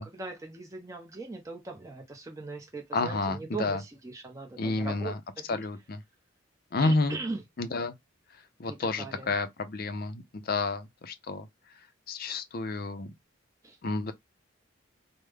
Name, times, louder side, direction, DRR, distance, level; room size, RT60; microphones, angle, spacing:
voice 1, 0.0-5.6 6.8-7.4 8.7-9.3 13.6-13.8, right 3 dB, 15° right, 0.6 m, -40 dB
voice 2, 2.9-3.8 4.6-5.2 5.5-6.0 6.7-7.2 7.6-7.9 8.6-11.5 12.1-13.1 13.8-14.1, left 3 dB, 45° left, 0.4 m, -30 dB
3.3 x 2.1 x 3.3 m
head